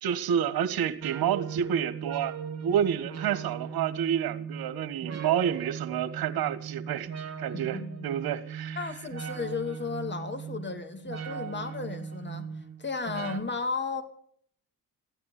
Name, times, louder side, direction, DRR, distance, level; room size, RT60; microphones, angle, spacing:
voice 1, 0.0-2.3 2.6-7.1 7.4-8.8, right 9 dB, 65° right, 1.5 m, -29 dB
sound 1, 1.0-13.4, right 7 dB, 40° right, 2.2 m, -38 dB
voice 2, 7.5-8.2 8.8-12.5 12.8-14.0, left 4 dB, 25° left, 2.8 m, -34 dB
15.0 x 9.7 x 9.8 m
supercardioid pair, 60°, 39 cm